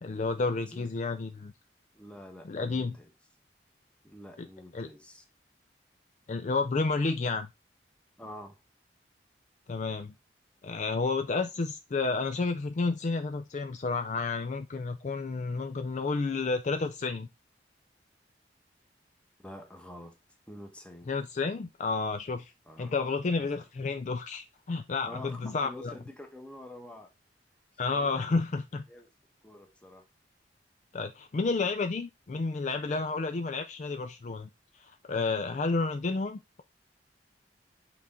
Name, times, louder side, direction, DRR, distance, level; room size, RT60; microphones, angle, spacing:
voice 1, 0.0-1.5 2.4-3.0 4.4-4.5 4.7-4.9 6.3-7.5 9.7-10.1 10.6-17.3 21.1-22.5 22.8-25.9 27.8-28.8 30.9-34.5 34.7-36.6, left 3 dB, 40° left, 0.4 m, -31 dB
voice 2, 1.9-3.1 4.0-5.2 8.2-8.6 19.4-20.2 20.5-21.1 22.7-22.9 25.0-27.1 27.8-28.3 28.9-29.1 29.4-30.1, left 1 dB, 5° left, 1.0 m, -47 dB
6.0 x 3.7 x 4.2 m
head